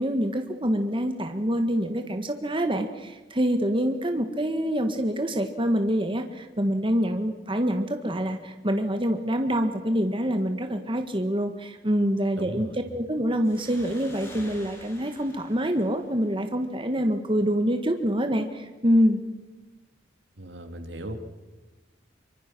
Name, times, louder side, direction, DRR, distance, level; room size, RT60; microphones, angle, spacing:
voice 1, 0.0-12.7 12.9-19.2, equal, 30° right, 6 dB, 1.6 m, -26 dB
voice 2, 12.4-12.8 20.4-21.1, right 1 dB, 75° right, 6 dB, 3.0 m, -37 dB
sound 1, 13.4-16.8, left 1 dB, 15° left, 7.3 m, -48 dB
25.5 x 24.5 x 6.1 m, 1.2 s
head